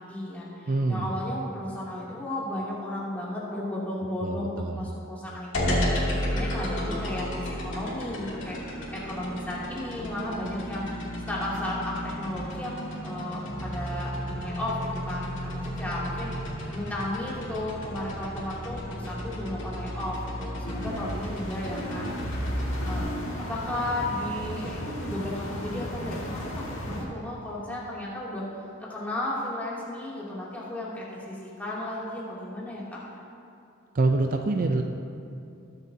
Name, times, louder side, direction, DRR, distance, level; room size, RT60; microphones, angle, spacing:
voice 1, 0.0-8.6 8.9-16.3 16.7-22.2 22.8-23.0 23.4-28.5 28.8-33.0, left 1 dB, 10° left, -8 dB, 2.8 m, -34 dB
voice 2, 0.7-1.1 4.2-4.9 33.9-34.8, right 2 dB, 45° right, 4 dB, 0.5 m, -25 dB
sound 1, 5.5-23.0, equal, 65° left, 2.7 m, -33 dB
sound 2, 20.6-27.0, equal, 85° left, 2.0 m, -35 dB
21.5 x 8.0 x 2.8 m, 2.6 s
head